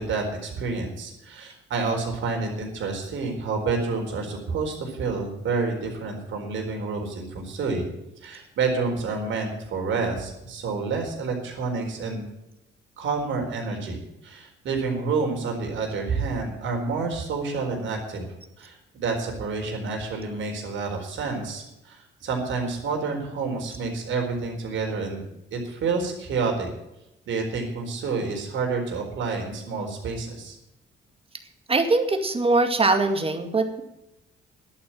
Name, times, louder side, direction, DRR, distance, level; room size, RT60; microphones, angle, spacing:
voice 1, 0.0-7.9 8.2-12.3 13.0-18.3 18.6-25.2 25.5-26.7 27.3-30.6, right 4 dB, 75° right, 2 dB, 4.3 m, -29 dB
voice 2, 31.7-33.8, right 3 dB, 30° right, 6 dB, 2.2 m, -22 dB
11.5 x 8.8 x 9.2 m, 0.90 s
cardioid pair, 90°, 20 cm